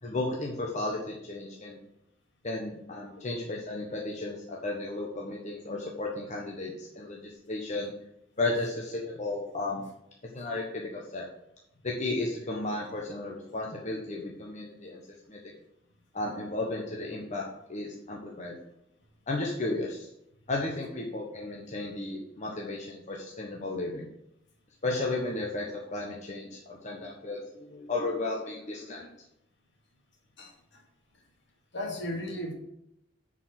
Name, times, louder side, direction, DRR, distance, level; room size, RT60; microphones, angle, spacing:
voice 1, 0.0-1.8 2.4-7.9 8.4-9.8 10.3-11.3 11.8-15.0 15.3-15.4 16.1-18.6 19.3-20.1 20.5-24.1 24.8-29.1, left 2 dB, 40° left, -1 dB, 1.1 m, -34 dB
voice 2, 30.4-30.8 31.7-32.5, left 1 dB, 65° left, 1 dB, 2.3 m, -36 dB
9.6 x 5.0 x 5.9 m, 0.81 s
head